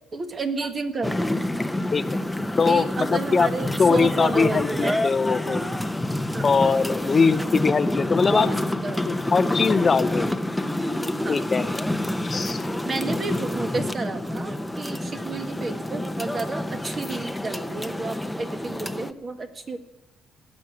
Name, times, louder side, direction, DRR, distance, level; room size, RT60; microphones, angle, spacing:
voice 1, 0.1-1.1 2.6-5.0 5.5-5.9 6.3-6.5 8.3-8.5 8.8-9.3 10.8-11.5 12.4-19.8, right 3 dB, 40° right, 7 dB, 1.7 m, -31 dB
sound 1, 1.0-19.1, left 1 dB, 5° left, 0.8 m, -28 dB
voice 2, 2.6-3.5 3.8-5.6 6.4-8.5 9.1-10.3 11.3-11.7 12.2-12.7, left 5 dB, 35° left, 13 dB, 0.6 m, -21 dB
18.0 x 6.3 x 9.7 m, 0.93 s
cardioid pair, 90°, 0 cm